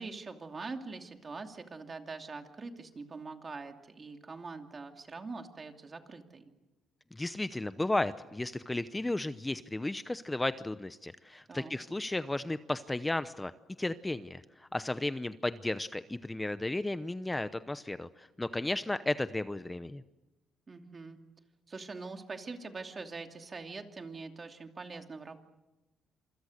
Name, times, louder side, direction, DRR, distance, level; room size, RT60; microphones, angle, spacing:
voice 1, 0.0-6.5 11.5-11.8 20.7-21.2 21.7-25.4, right 4 dB, 35° right, 5 dB, 2.7 m, -43 dB
voice 2, 7.1-13.5 13.8-20.0, left 2 dB, 15° left, 13 dB, 0.8 m, -34 dB
27.0 x 25.5 x 6.6 m, 1.0 s
cardioid pair, 90°, 0 cm